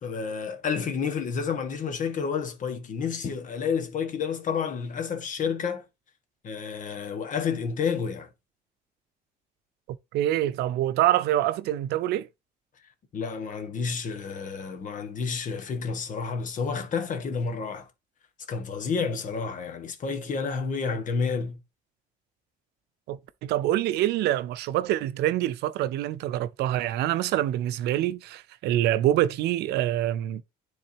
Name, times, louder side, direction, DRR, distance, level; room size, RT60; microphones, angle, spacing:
voice 1, 0.0-5.8 6.4-8.3 13.1-17.9 18.5-21.6, left 5 dB, 50° left, 1.5 m, -30 dB
voice 2, 10.1-12.3 23.1-30.4, right 13 dB, 80° right, 0.6 m, -25 dB
10.0 x 3.8 x 2.8 m
cardioid pair, 110°, 17 cm